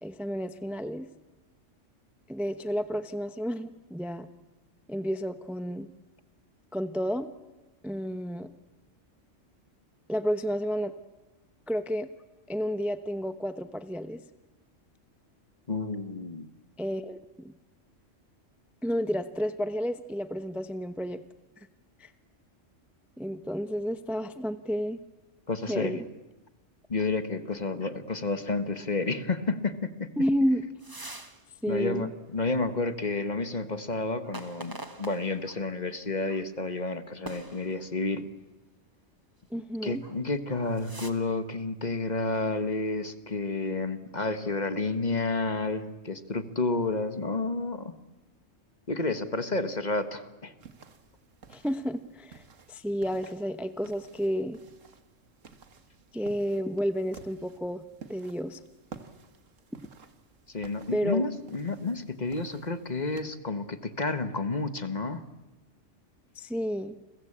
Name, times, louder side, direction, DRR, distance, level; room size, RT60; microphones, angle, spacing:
voice 1, 0.0-1.1 2.3-4.3 4.9-5.9 6.7-7.3 7.8-8.5 10.1-10.9 11.7-12.1 12.5-14.2 16.8-17.5 18.8-21.2 22.0-22.1 23.2-25.0 25.7-26.0 30.2-30.6 31.6-32.1 39.5-40.0 51.5-52.4 52.7-54.6 56.1-57.8 58.1-58.6 60.9-61.2 66.3-67.0, equal, ahead, 10 dB, 0.8 m, -31 dB
voice 2, 15.7-16.4 25.5-26.0 26.9-30.1 31.7-38.2 39.8-47.9 48.9-50.5 60.5-65.2, left 3 dB, 35° left, 11 dB, 1.4 m, -30 dB
sound 1, 30.8-31.4 31.8-31.9 34.2-35.6 36.3-36.4 37.2-38.1 39.9-40.2 40.5-41.1, right 2 dB, 15° right, 1.6 m, -44 dB
sound 2, 50.6-63.2, right 5 dB, 90° right, 1.9 m, -52 dB
29.5 x 22.0 x 8.7 m, 1.1 s
omnidirectional pair, 1.3 m